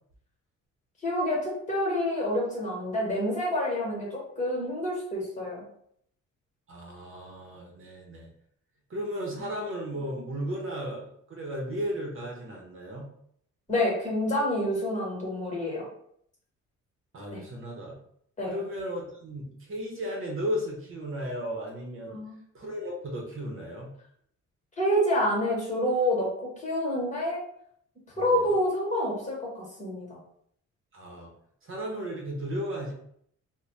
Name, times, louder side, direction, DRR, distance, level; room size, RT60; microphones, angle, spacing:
voice 1, 1.0-5.6 9.3-9.4 13.7-15.8 17.3-17.4 18.4-18.6 22.1-22.4 24.8-27.4 28.2-30.2, equal, 25° left, -3 dB, 1.4 m, -28 dB
voice 2, 6.7-8.3 8.9-13.1 17.1-18.0 18.5-22.2 22.5-23.9 28.1-28.4 30.9-31.3 31.6-32.9, equal, 45° right, -1 dB, 0.9 m, -35 dB
2.6 x 2.2 x 3.3 m, 0.67 s
cardioid pair, 90°, 30 cm